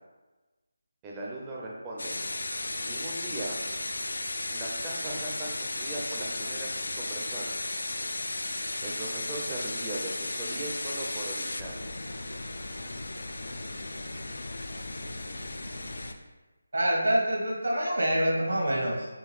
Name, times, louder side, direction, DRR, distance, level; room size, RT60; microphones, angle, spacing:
voice 1, 1.0-2.2 2.8-3.6 4.5-7.6 8.8-11.8, right 2 dB, 15° right, -3 dB, 0.4 m, -39 dB
sound 1, 2.0-16.1, left 2 dB, 75° left, 0.3 m, -35 dB
voice 2, 16.7-19.1, right 1 dB, 80° right, -2 dB, 1.1 m, -26 dB
3.7 x 2.4 x 3.1 m, 1.2 s
figure-of-eight pair, 170°, 0 cm